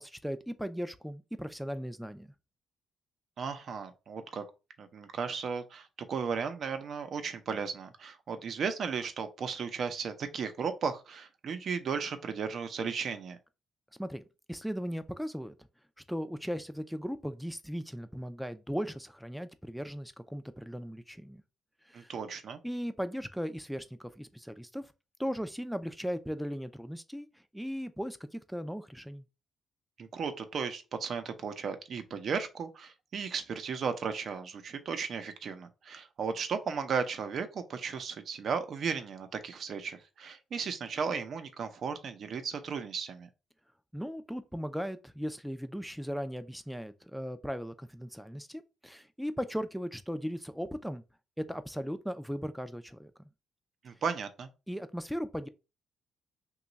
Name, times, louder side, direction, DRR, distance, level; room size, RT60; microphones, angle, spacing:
voice 1, 0.0-2.3 14.0-15.5 16.1-21.4 21.9-22.1 22.6-24.9 25.2-29.3 43.9-51.0 51.4-53.3 54.7-55.5, equal, ahead, 0.4 m, -37 dB
voice 2, 3.4-4.4 4.8-13.4 21.9-22.6 30.0-43.3 53.8-54.5, right 6 dB, 60° right, 0.6 m, -35 dB
3.0 x 2.3 x 3.9 m
cardioid pair, 90°, 0 cm